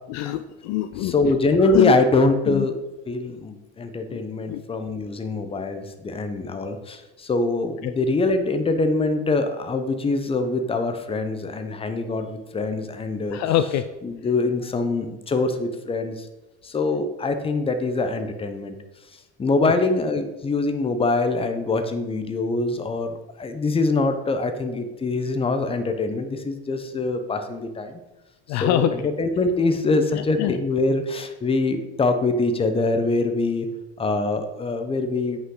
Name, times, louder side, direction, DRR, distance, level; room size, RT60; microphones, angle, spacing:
voice 1, 0.1-1.3 1.7-1.9 2.5-2.7 4.1-4.2 4.5-4.6 13.3-13.8 19.6-19.7 28.5-28.9 30.1-30.6, left 13 dB, 55° left, 10 dB, 0.5 m, -24 dB
voice 2, 1.0-2.7 3.1-13.4 14.0-16.3 16.6-18.8 19.4-27.9 28.5-33.7 34.0-35.4, left 3 dB, 15° left, 8 dB, 0.8 m, -24 dB
8.6 x 5.7 x 3.8 m, 1.1 s
supercardioid pair, 115°, 33 cm